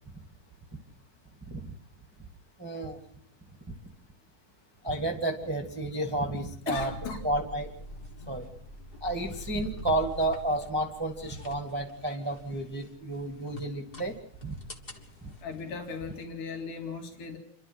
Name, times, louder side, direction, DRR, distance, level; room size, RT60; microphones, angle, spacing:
voice 1, 2.6-3.0 3.7-3.8 4.8-6.9 7.2-7.7 8.3-8.5 9.0-14.1 14.4-14.5, right 1 dB, 10° right, 2 dB, 1.3 m, -31 dB
voice 2, 6.7-7.2 15.4-17.4, left 5 dB, 85° left, 3 dB, 3.8 m, -37 dB
sound 1, 6.7-16.3, left 1 dB, 25° left, 1.4 m, -45 dB
28.5 x 12.0 x 7.8 m, 0.67 s
omnidirectional pair, 3.5 m